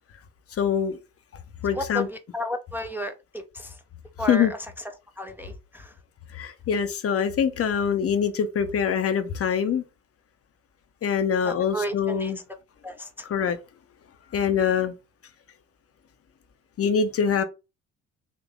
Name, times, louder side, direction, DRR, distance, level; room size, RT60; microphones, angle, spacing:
voice 1, 0.5-1.0 1.6-2.1 4.3-4.5 6.3-9.8 11.0-12.4 13.3-13.6 14.3-14.9 16.8-17.4, left 7 dB, 35° left, 0.7 m, -24 dB
voice 2, 1.7-3.8 4.2-6.0 11.4-12.3 12.8-13.3, equal, 5° right, 0.5 m, -33 dB
3.7 x 2.8 x 3.6 m
figure-of-eight pair, 45°, 40 cm